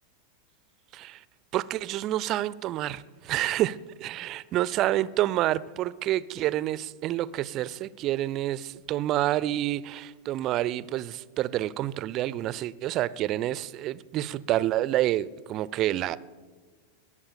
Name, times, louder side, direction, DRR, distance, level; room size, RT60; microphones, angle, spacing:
voice 1, 1.5-3.8 4.0-16.2, right 14 dB, 35° right, 0.4 m, -28 dB
20.5 x 7.1 x 6.8 m
figure-of-eight pair, 90°, 0 cm